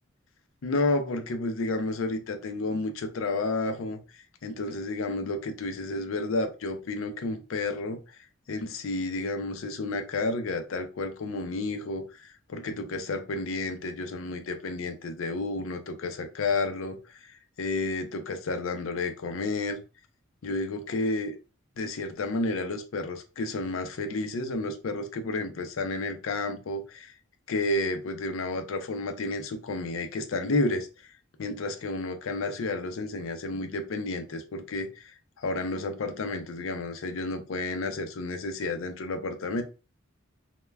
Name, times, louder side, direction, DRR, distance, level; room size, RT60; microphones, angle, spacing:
voice 1, 0.6-8.0 8.5-19.8 20.4-21.4 21.8-27.1 27.5-30.9 31.4-39.6, left 2 dB, 80° left, 7 dB, 0.5 m, -31 dB
2.2 x 2.1 x 3.2 m, 0.32 s
head